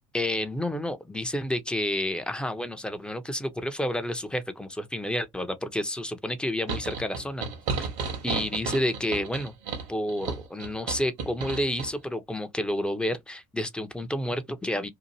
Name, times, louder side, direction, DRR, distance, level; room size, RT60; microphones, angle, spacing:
voice 1, 0.1-7.5 7.8-7.9 8.2-9.5 9.9-14.9, left 1 dB, 5° left, 0.7 m, -30 dB
sound 1, 6.7-11.9, right 5 dB, 65° right, 1.2 m, -33 dB
2.8 x 2.5 x 2.7 m
hypercardioid pair, 65°, 17 cm